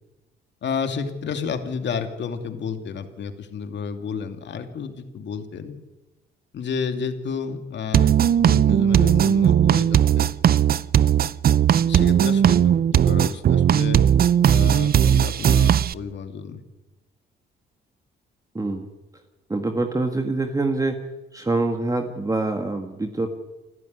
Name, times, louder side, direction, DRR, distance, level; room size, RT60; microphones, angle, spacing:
voice 1, 0.6-5.8 6.5-10.3 11.9-14.0 14.4-16.6, left 6 dB, 65° left, 6 dB, 2.7 m, -31 dB
sound 1, 7.9-15.9, right 9 dB, 50° right, 0.6 m, -18 dB
voice 2, 18.5-18.9 19.5-21.0 21.3-23.3, right 2 dB, 15° right, 5 dB, 1.8 m, -25 dB
29.5 x 11.0 x 9.6 m, 1.1 s
cardioid pair, 90°, 20 cm